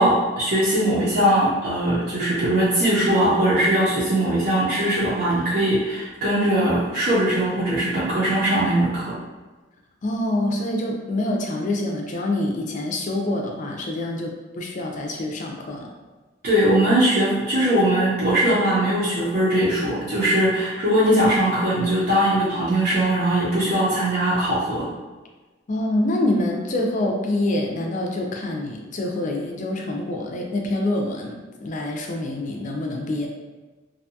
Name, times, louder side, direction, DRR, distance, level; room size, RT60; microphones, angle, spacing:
voice 1, 0.0-9.2 16.4-24.9, right 1 dB, 50° right, -10 dB, 0.6 m, -20 dB
voice 2, 10.0-15.9 25.7-33.3, left 1 dB, 40° left, 1 dB, 0.4 m, -26 dB
2.6 x 2.2 x 2.7 m, 1.2 s
head